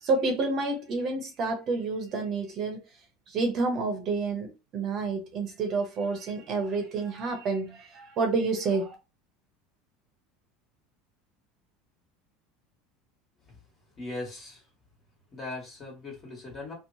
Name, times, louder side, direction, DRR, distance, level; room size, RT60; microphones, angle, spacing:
voice 1, 0.0-2.8 3.3-8.9, right 3 dB, 45° right, 0.7 m, -29 dB
voice 2, 14.0-14.6 15.3-16.7, left 2 dB, 30° left, 1.4 m, -39 dB
2.9 x 2.0 x 2.7 m
supercardioid pair, 120°, 0 cm